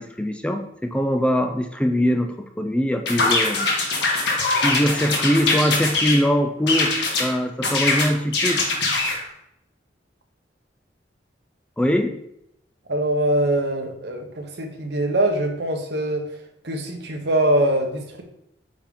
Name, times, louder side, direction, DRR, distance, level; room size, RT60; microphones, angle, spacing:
voice 1, 0.0-3.7 4.6-8.7 11.8-12.2, equal, 5° left, 6 dB, 0.4 m, -22 dB
sound 1, 3.1-6.2 6.7-7.3 7.6-9.2, left 3 dB, 65° left, 1.5 m, -22 dB
voice 2, 12.9-16.4 16.6-18.2, right 1 dB, 65° right, 4 dB, 1.1 m, -23 dB
8.9 x 3.6 x 3.8 m, 0.79 s
head